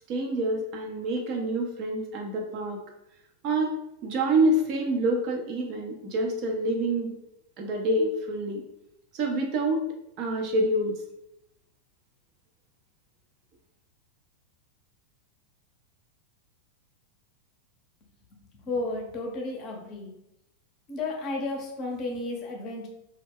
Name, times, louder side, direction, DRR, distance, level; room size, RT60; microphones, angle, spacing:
voice 1, 0.1-2.8 3.4-3.7 4.0-7.1 7.6-8.6 9.1-9.8 10.2-11.0, right 1 dB, 40° right, 2 dB, 0.5 m, -27 dB
voice 2, 18.3-20.1 20.9-22.9, left 2 dB, 35° left, 1 dB, 0.6 m, -33 dB
2.2 x 2.1 x 3.4 m, 0.83 s
figure-of-eight pair, 90°, 0 cm